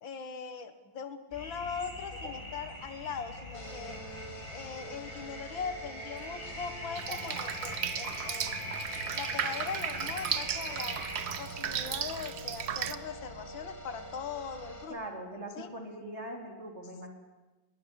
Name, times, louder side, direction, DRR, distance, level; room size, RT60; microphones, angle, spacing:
voice 1, 0.0-4.0 4.5-8.8 9.1-11.0 11.4-15.0 15.6-15.7, left 6 dB, 75° left, 10 dB, 2.3 m, -40 dB
sound 1, 1.3-11.2, left 1 dB, 15° left, 5.5 m, -42 dB
sound 2, 3.5-14.8, equal, 40° left, 4.6 m, -46 dB
Drip, 7.0-13.0, right 9 dB, 60° right, 1.4 m, -35 dB
voice 2, 14.9-17.1, right 1 dB, 35° right, 3 dB, 3.8 m, -41 dB
21.5 x 18.5 x 9.7 m, 1.1 s
omnidirectional pair, 2.1 m